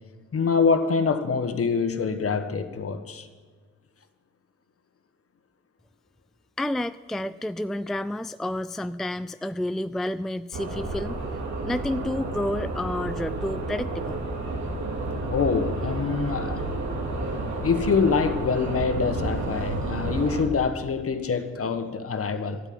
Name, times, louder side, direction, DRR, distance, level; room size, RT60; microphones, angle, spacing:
voice 1, 0.3-3.3 15.3-16.7 17.6-22.6, left 5 dB, 50° left, 1.5 m, -25 dB
voice 2, 6.6-11.2 11.6-14.2, left 1 dB, ahead, 0.4 m, -30 dB
sound 1, 10.5-20.5, right 2 dB, 65° right, 2.9 m, -30 dB
12.0 x 9.4 x 9.6 m
supercardioid pair, 60°, 30 cm